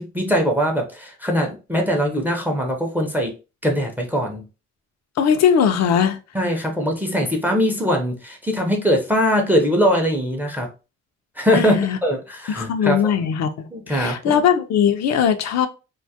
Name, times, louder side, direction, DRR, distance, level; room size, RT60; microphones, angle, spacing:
voice 1, 0.0-3.3 3.6-4.4 6.3-10.7 11.4-13.1 13.7-14.2, equal, 5° right, 0.4 m, -21 dB
voice 2, 5.2-6.2 11.5-12.0 12.5-15.7, left 8 dB, 60° left, 0.4 m, -19 dB
2.2 x 2.0 x 2.7 m
cardioid pair, 90°, 30 cm